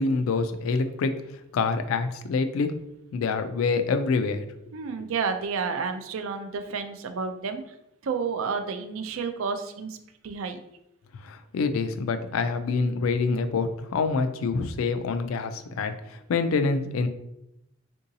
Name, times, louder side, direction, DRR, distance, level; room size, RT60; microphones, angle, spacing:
voice 1, 0.0-2.8 3.1-4.5 11.1-17.1, left 4 dB, 85° left, 9 dB, 0.3 m, -26 dB
voice 2, 4.7-7.7 8.0-10.0 10.2-10.6, right 5 dB, 80° right, 7 dB, 0.4 m, -30 dB
3.7 x 2.7 x 2.7 m, 0.83 s
head